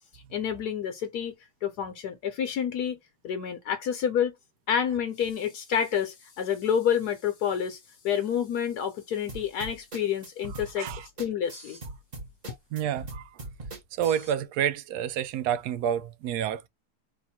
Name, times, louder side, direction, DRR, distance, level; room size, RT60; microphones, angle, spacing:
voice 1, 0.3-1.3 1.6-3.0 3.2-4.3 4.7-11.8, left 8 dB, 70° left, 1.3 m, -28 dB
sound 1, 9.3-14.3, right 2 dB, 30° right, 1.2 m, -40 dB
voice 2, 12.7-13.3 14.0-16.7, right 9 dB, 75° right, 1.1 m, -29 dB
3.7 x 2.6 x 4.2 m
omnidirectional pair, 1.8 m